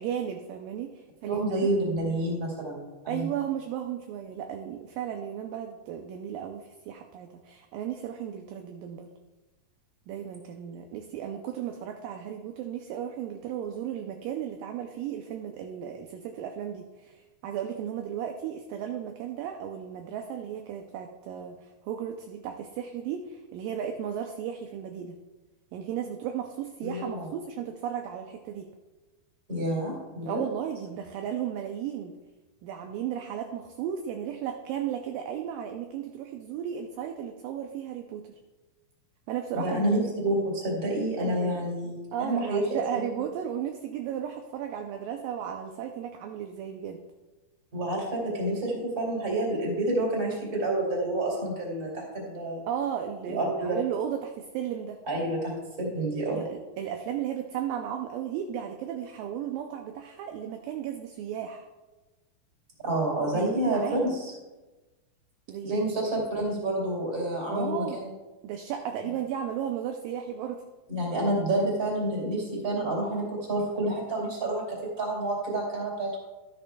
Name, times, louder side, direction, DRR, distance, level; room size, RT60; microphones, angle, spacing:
voice 1, 0.0-1.4 3.1-9.1 10.1-25.2 25.7-28.7 30.2-32.1 32.6-38.3 39.3-40.0 41.2-41.6 42.1-47.0 52.7-55.0 56.3-61.7 63.3-64.2 65.5-65.8 67.5-68.0 68.4-70.6, right 9 dB, 80° right, 4 dB, 2.1 m, -35 dB
voice 2, 1.2-3.3 26.8-27.3 29.5-30.4 39.5-41.9 42.2-42.8 47.7-52.7 53.3-53.8 55.1-56.4 62.8-64.3 65.6-68.1 70.9-74.7 75.0-76.2, right 1 dB, 25° right, -3 dB, 2.7 m, -29 dB
12.5 x 10.5 x 2.3 m, 1.2 s
omnidirectional pair, 4.5 m